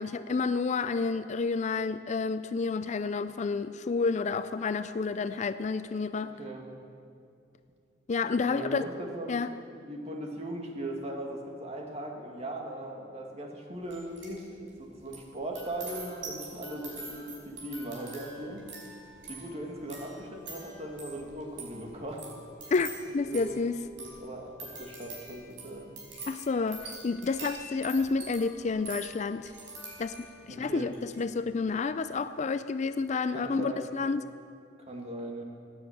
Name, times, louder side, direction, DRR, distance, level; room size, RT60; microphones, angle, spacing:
voice 1, 0.0-6.3 8.1-8.9 9.3-9.5 22.7-23.8 26.3-29.5 30.0-30.2 30.4-34.2, left 4 dB, 40° left, 12 dB, 0.4 m, -30 dB
voice 2, 6.1-6.7 8.5-9.4 9.8-18.7 19.3-22.2 22.6-22.7 23.2-23.6 23.9-25.9 30.5-30.9 33.3-34.0 34.8-35.4, right 1 dB, 35° right, 1 dB, 2.2 m, -39 dB
sound 1, 13.9-14.4 14.7-30.4 30.9-31.2, right 2 dB, 75° right, 5.2 m, -45 dB
16.0 x 9.8 x 8.7 m, 2.4 s
head